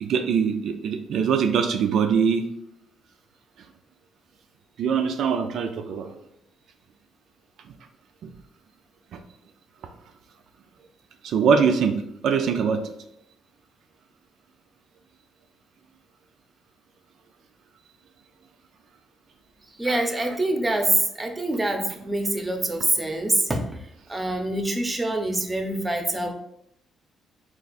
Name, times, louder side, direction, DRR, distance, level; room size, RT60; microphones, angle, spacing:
voice 1, 0.0-2.4 4.8-6.1 8.2-8.3 11.2-12.8, right 6 dB, 75° right, 5 dB, 0.4 m, -22 dB
voice 2, 19.8-23.6 24.1-26.3, right 1 dB, 15° right, 4 dB, 0.7 m, -25 dB
3.5 x 2.5 x 4.0 m, 0.76 s
cardioid pair, 90°, 0 cm